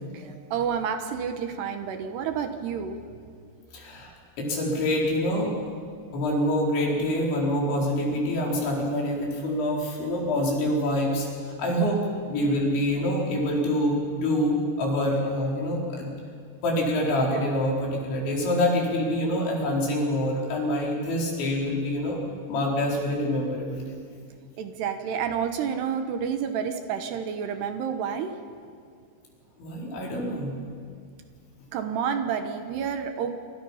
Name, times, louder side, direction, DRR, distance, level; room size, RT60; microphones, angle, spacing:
voice 1, 0.1-3.0 24.6-28.3 31.7-33.3, right 7 dB, 70° right, 7 dB, 3.1 m, -29 dB
voice 2, 3.7-5.6 6.1-11.3 11.6-12.0 12.3-16.1 16.6-22.2 22.5-24.0 29.6-30.6, left 1 dB, 75° left, -2 dB, 6.6 m, -26 dB
26.5 x 26.5 x 5.8 m, 2.2 s
omnidirectional pair, 5.3 m